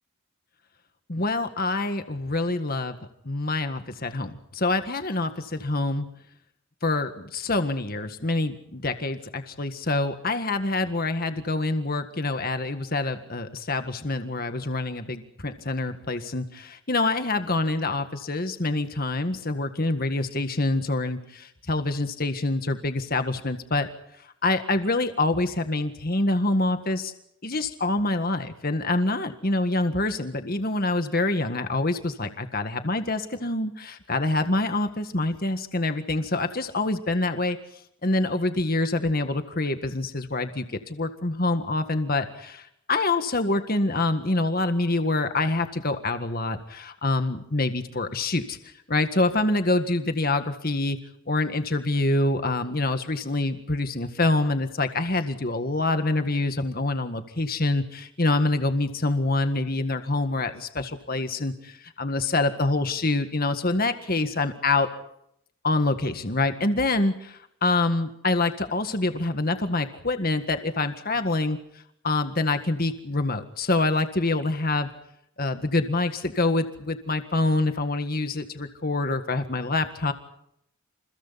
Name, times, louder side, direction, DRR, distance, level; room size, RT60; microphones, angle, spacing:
voice 1, 1.1-3.0 3.3-6.1 6.8-23.9 24.2-27.1 27.4-37.6 38.0-51.0 51.3-64.9 65.6-71.6 72.0-74.9 75.4-80.1, left 2 dB, 40° left, 8 dB, 1.7 m, -26 dB
29.0 x 28.5 x 4.2 m, 0.77 s
head